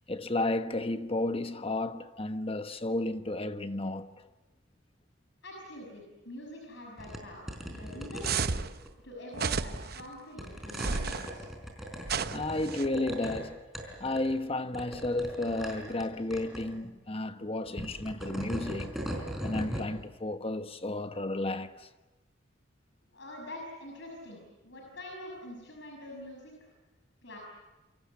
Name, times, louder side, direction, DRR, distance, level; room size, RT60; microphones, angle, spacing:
voice 1, 0.1-4.1 12.3-13.6 14.0-19.0 19.4-21.9, left 2 dB, 30° left, 1.2 m, -32 dB
voice 2, 5.4-8.4 9.0-11.5 23.1-26.7 27.2-27.4, left 1 dB, 65° left, 6.2 m, -45 dB
sound 1, 7.0-7.2 7.5-8.9 9.7-10.0 10.4-13.4 13.7-14.4 14.7-16.0 16.3-16.6 17.7-19.9, equal, ahead, 4.7 m, -39 dB
sound 2, 8.2-8.7 9.3-10.0 10.7-11.3 12.0-12.9, right 5 dB, 50° right, 0.9 m, -32 dB
27.5 x 24.0 x 8.5 m
head